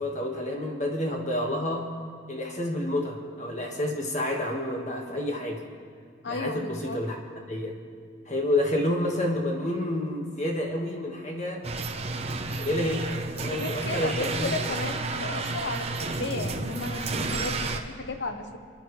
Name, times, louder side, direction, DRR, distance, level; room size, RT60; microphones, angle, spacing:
voice 1, 0.0-1.9 2.3-5.6 6.3-7.2 7.5-7.7 8.2-11.6 12.6-14.6, left 1 dB, 35° left, 1 dB, 1.7 m, -29 dB
voice 2, 6.2-7.0 13.5-18.6, left 3 dB, 65° left, 7 dB, 1.0 m, -34 dB
sound 1, 11.6-17.8, right 3 dB, 30° right, 0.8 m, -31 dB
28.5 x 10.5 x 3.3 m, 2.1 s
head